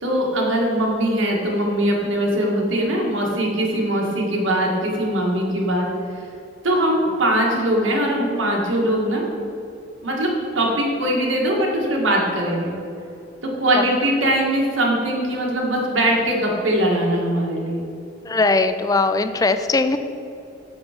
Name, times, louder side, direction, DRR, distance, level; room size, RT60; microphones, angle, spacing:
voice 1, 0.0-5.9 6.6-9.3 10.0-10.3 10.6-12.7 13.4-17.8, right 1 dB, 85° right, -1 dB, 1.8 m, -21 dB
voice 2, 18.2-20.0, left 3 dB, 20° left, 10 dB, 0.3 m, -20 dB
7.1 x 7.0 x 5.1 m, 2.8 s
head